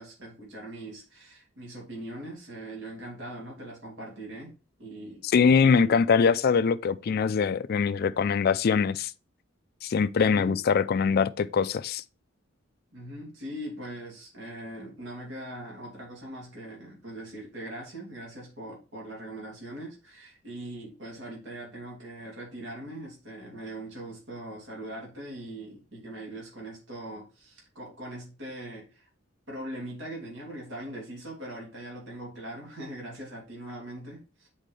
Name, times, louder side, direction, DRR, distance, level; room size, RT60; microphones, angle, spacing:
voice 1, 0.0-5.2 5.6-6.0 10.1-10.6 12.9-29.1 29.5-34.5, right 1 dB, 65° right, 2.7 m, -41 dB
voice 2, 5.2-9.1 9.8-12.0, left 5 dB, 50° left, 0.3 m, -23 dB
7.5 x 4.6 x 3.2 m
head